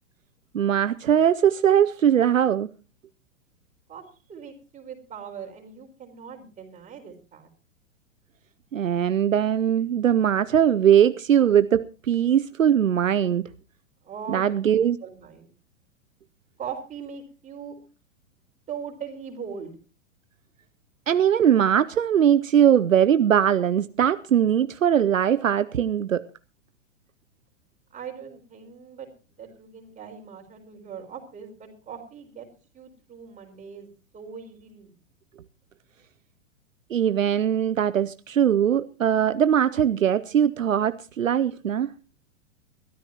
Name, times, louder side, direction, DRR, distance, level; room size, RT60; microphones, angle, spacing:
voice 1, 0.5-2.7 8.7-13.4 14.3-15.0 21.1-26.2 36.9-41.9, right 9 dB, 75° right, 0.7 m, -21 dB
voice 2, 4.3-7.5 14.0-15.5 16.6-17.7 18.7-19.7 27.9-29.1 29.4-32.5 32.7-33.9 34.1-34.9, right 7 dB, 20° right, 4.2 m, -40 dB
22.0 x 13.5 x 2.9 m
figure-of-eight pair, 105°, 39 cm